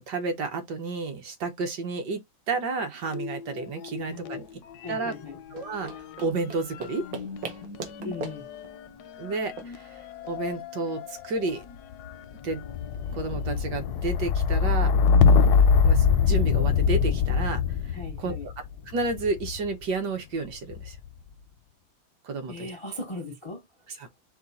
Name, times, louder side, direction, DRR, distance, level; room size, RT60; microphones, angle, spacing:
voice 1, 0.0-2.2 2.5-4.5 4.9-5.1 5.5-7.0 9.2-10.0 10.2-11.6 12.4-12.7 13.1-14.9 15.8-18.5 18.9-21.0 22.2-22.7, right 3 dB, 65° right, 1.5 m, -31 dB
sound 1, 3.1-4.4 4.7-19.7 20.5-21.1, left 6 dB, 75° left, 1.0 m, -25 dB
voice 2, 4.8-5.4 8.0-8.5 17.9-18.5 22.5-23.6, left 2 dB, 35° left, 0.5 m, -38 dB
sound 2, 5.4-10.6, right 5 dB, 85° right, 1.7 m, -42 dB
5.0 x 2.3 x 4.0 m
omnidirectional pair, 2.1 m